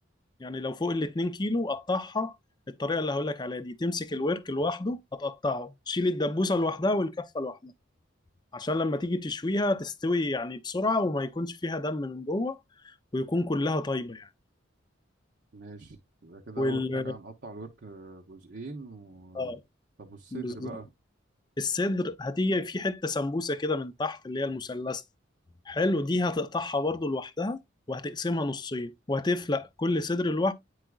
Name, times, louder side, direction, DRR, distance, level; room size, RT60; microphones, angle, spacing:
voice 1, 0.4-2.3 2.7-7.7 8.5-12.6 12.8-14.3 16.6-17.1 19.3-19.6 20.3-20.7 21.6-25.0 25.7-27.6 27.9-30.5, left 2 dB, 20° left, 0.5 m, -29 dB
voice 2, 15.5-19.6 20.0-20.9, right 3 dB, 55° right, 0.8 m, -43 dB
9.0 x 4.7 x 2.3 m
head